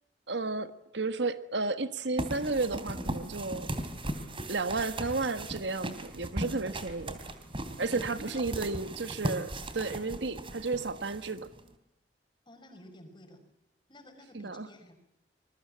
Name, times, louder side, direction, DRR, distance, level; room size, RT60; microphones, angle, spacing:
voice 1, 0.3-3.7 4.5-7.2 7.8-11.5 14.3-14.7, right 3 dB, 70° right, 11 dB, 1.4 m, -33 dB
sound 1, 2.2-11.7, right 1 dB, 30° right, 3.1 m, -38 dB
voice 2, 7.7-8.5 12.5-13.4 13.9-15.0, left 1 dB, 25° left, 6 dB, 5.8 m, -51 dB
26.0 x 22.0 x 7.5 m, 0.85 s
head